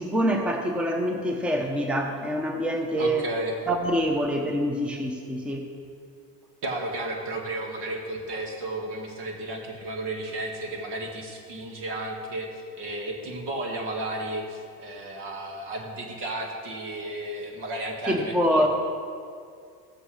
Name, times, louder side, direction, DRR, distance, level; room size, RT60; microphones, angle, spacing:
voice 1, 0.0-3.2 3.7-5.6 18.1-18.7, equal, ahead, 3 dB, 0.9 m, -25 dB
voice 2, 3.0-3.6 6.6-18.7, right 1 dB, 55° right, 1 dB, 1.9 m, -33 dB
13.5 x 8.0 x 3.3 m, 2.3 s
hypercardioid pair, 80°, 49 cm